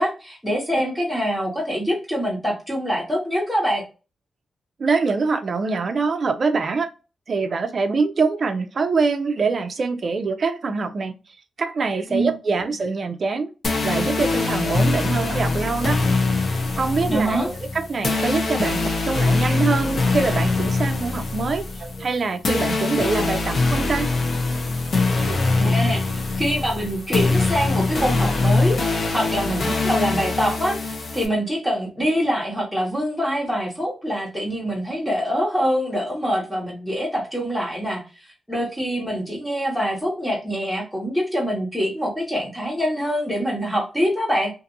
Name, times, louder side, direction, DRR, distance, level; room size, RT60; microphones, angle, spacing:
voice 1, 0.0-3.8 12.1-12.3 17.1-17.5 25.5-26.0 26.4-38.0 38.5-44.5, equal, ahead, 1.3 m, -24 dB
voice 2, 4.8-6.9 7.3-11.1 11.6-13.5 13.8-16.0 16.8-24.1 25.1-25.8, right 4 dB, 45° right, 0.5 m, -24 dB
sound 1, 13.6-31.3, left 3 dB, 45° left, 0.7 m, -23 dB
2.7 x 2.5 x 2.5 m
wide cardioid pair, 125°, 0 cm